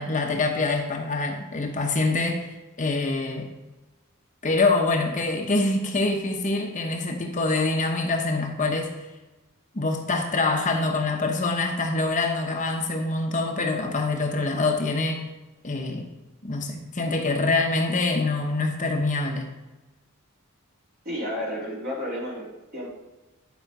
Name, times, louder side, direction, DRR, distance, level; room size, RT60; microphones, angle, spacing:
voice 1, 0.0-3.5 4.4-9.1 9.7-15.2 15.6-16.1 16.4-19.5, left 3 dB, 35° left, 2 dB, 0.9 m, -25 dB
voice 2, 21.0-22.9, equal, 45° right, -4 dB, 2.9 m, -32 dB
10.5 x 5.0 x 4.7 m, 1.1 s
head